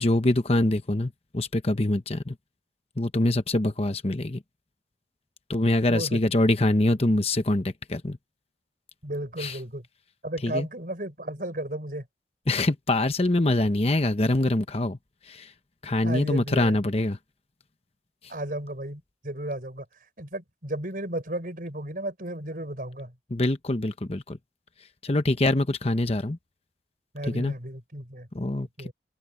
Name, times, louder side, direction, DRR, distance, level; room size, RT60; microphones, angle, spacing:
voice 1, 0.0-2.3 3.0-4.4 5.5-8.2 9.4-9.6 10.4-10.7 12.5-15.0 15.3-15.5 15.8-17.2 23.3-24.4 25.0-26.4 27.2-27.5 28.3-28.7, left 1 dB, 35° left, 1.0 m, -24 dB
voice 2, 5.9-6.2 9.0-9.9 10.2-12.1 16.0-16.8 18.3-19.9 20.2-23.2 27.1-28.3 28.8-28.9, right 1 dB, 50° right, 5.5 m, -34 dB
open air
head